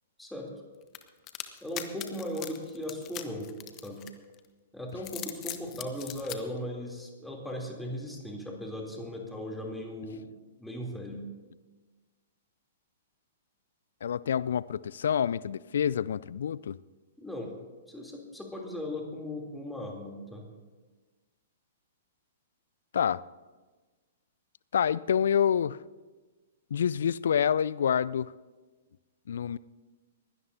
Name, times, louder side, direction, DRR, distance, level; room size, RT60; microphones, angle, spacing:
voice 1, 0.2-0.5 1.6-3.5 3.8-4.0 4.7-10.2 10.6-11.2 17.2-17.5 17.9-20.4, left 1 dB, ahead, -1 dB, 3.1 m, -37 dB
sound 1, 0.9-4.4 4.9-6.4, left 13 dB, 30° left, 1.1 m, -40 dB
voice 2, 14.0-16.8 22.9-23.2 24.7-25.8 26.7-28.3 29.3-29.6, left 8 dB, 60° left, 20 dB, 0.4 m, -27 dB
21.5 x 16.5 x 2.8 m, 1.3 s
figure-of-eight pair, 110°, 0 cm